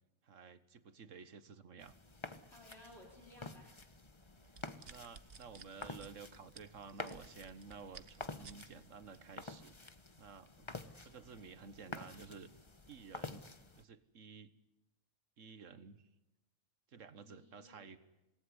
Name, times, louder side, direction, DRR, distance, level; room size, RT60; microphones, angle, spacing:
voice 1, 0.2-1.9 4.7-9.7 10.2-10.7 11.0-12.5 12.9-13.5 13.8-14.5 15.4-16.0 16.9-18.0, right 5 dB, 60° right, 13 dB, 1.6 m, -53 dB
sound 1, 1.8-13.8, left 3 dB, 20° left, 1.0 m, -50 dB
voice 2, 2.5-3.8 17.1-18.0, left 1 dB, 45° left, -2 dB, 4.5 m, -59 dB
sound 2, 4.4-8.7 9.1-9.4, right 5 dB, 45° right, 1.3 m, -55 dB
26.5 x 19.0 x 9.8 m, 0.97 s
omnidirectional pair, 1.5 m